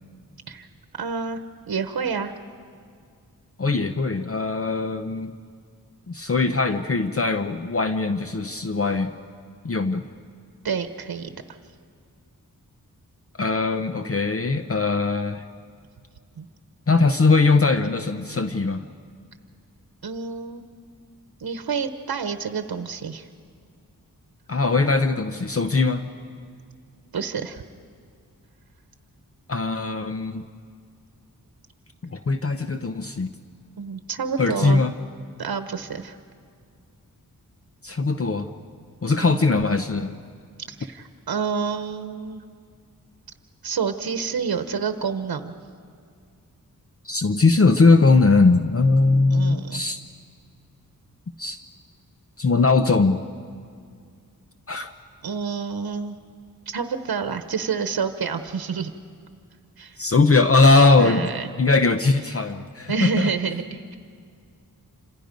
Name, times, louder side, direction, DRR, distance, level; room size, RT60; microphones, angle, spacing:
voice 1, 1.0-2.3 10.6-11.6 16.4-16.5 20.0-20.6 21.4-23.3 27.1-27.6 33.8-34.9 35.4-36.2 39.2-39.4 40.7-42.4 43.6-45.5 49.3-49.8 55.2-56.2 56.7-58.9 59.8-60.1 61.0-61.5 62.9-64.0, right 6 dB, 80° right, 8 dB, 1.0 m, -28 dB
voice 2, 3.6-5.3 6.1-9.1 9.6-10.1 13.3-15.4 16.9-18.9 24.5-26.0 29.5-30.4 32.0-33.3 34.4-34.9 37.8-38.5 39.0-40.1 47.0-50.0 51.4-51.6 52.4-53.2 54.7-54.9 60.0-61.2 61.6-63.3, left 3 dB, 40° left, 8 dB, 0.7 m, -20 dB
28.0 x 27.0 x 5.2 m, 2.2 s
wide cardioid pair, 115°, 36 cm